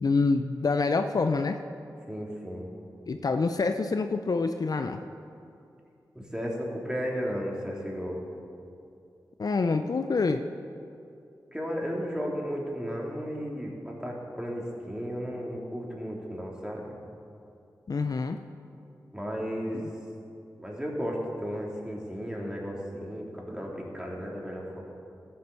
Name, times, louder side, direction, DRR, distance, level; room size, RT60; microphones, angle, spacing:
voice 1, 0.0-1.6 3.1-5.0 9.4-10.4 17.9-18.4, left 4 dB, 55° left, 7 dB, 0.6 m, -26 dB
voice 2, 2.1-2.6 6.1-8.2 11.5-17.0 19.1-19.9 20.6-24.8, equal, 10° right, -2 dB, 3.2 m, -34 dB
13.5 x 8.5 x 7.0 m, 2.6 s
cardioid pair, 45°, 8 cm